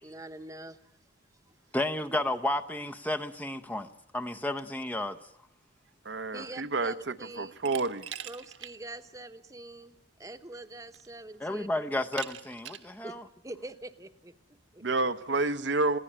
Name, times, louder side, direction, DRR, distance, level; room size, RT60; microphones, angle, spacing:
voice 1, 0.0-1.0 1.5-1.6 6.3-7.6 8.2-9.9 10.2-12.0 13.0-13.2 13.4-15.1, right 2 dB, 15° right, 1.0 m, -45 dB
voice 2, 1.7-3.9 4.1-5.2 11.4-13.2, left 1 dB, 10° left, 0.7 m, -32 dB
voice 3, 6.0-8.1 14.8-16.0, right 3 dB, 65° right, 0.8 m, -29 dB
Glass, 7.6-8.7 9.1-9.2 10.4-10.5 10.9-11.3 12.1-12.9, right 10 dB, 85° right, 1.5 m, -42 dB
21.5 x 16.5 x 9.9 m
head